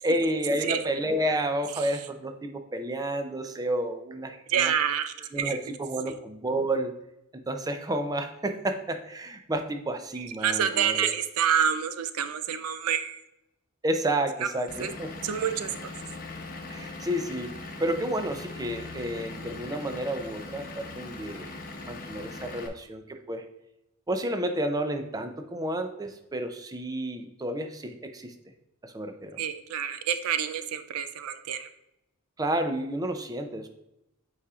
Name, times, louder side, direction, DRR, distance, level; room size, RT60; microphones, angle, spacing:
voice 1, 0.0-4.7 5.3-6.9 7.5-11.1 13.8-15.1 16.7-17.5 17.8-21.5 21.9-23.4 24.1-28.3 28.8-29.4 32.4-33.7, right 1 dB, 15° right, 6 dB, 0.5 m, -30 dB
voice 2, 4.5-5.6 10.2-13.2 14.8-14.9 15.2-15.7 29.4-31.7, right 8 dB, 70° right, 10 dB, 0.4 m, -28 dB
Vehicle / Engine, 14.7-22.7, left 2 dB, 40° left, 0.9 m, -40 dB
8.3 x 4.8 x 2.4 m, 0.85 s
head